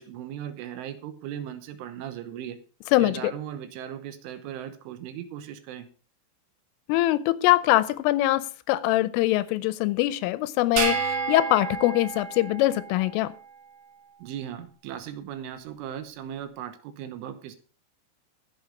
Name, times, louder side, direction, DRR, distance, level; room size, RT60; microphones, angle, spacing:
voice 1, 0.0-2.6 3.0-5.9 14.2-17.6, right 10 dB, 80° right, 3.4 m, -37 dB
voice 2, 2.9-3.3 6.9-13.3, left 16 dB, 85° left, 3.2 m, -23 dB
sound 1, 10.8-13.3, right 5 dB, 60° right, 3.6 m, -30 dB
15.0 x 8.1 x 5.0 m
omnidirectional pair, 5.9 m